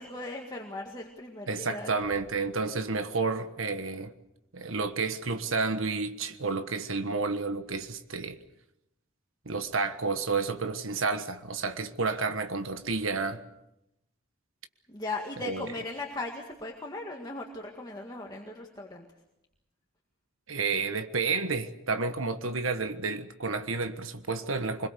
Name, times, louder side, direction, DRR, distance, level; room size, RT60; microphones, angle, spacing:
voice 1, 0.0-2.0 14.9-19.0, left 2 dB, 20° left, 1.9 m, -38 dB
voice 2, 1.5-4.1 4.5-8.4 9.4-13.4 15.4-15.7 20.5-24.9, right 4 dB, 80° right, 1.4 m, -30 dB
25.5 x 21.5 x 6.9 m
head